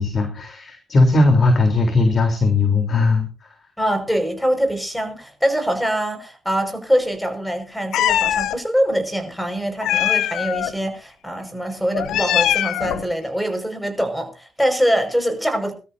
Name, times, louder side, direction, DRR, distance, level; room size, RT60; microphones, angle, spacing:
voice 1, 0.0-3.3, left 3 dB, 45° left, 3.6 m, -18 dB
voice 2, 3.8-15.7, equal, 5° left, 5.6 m, -23 dB
Meow, 7.9-8.6 9.8-10.7 11.9-13.1, left 11 dB, 80° left, 0.7 m, -21 dB
22.5 x 13.0 x 2.7 m
cardioid pair, 90°, 0 cm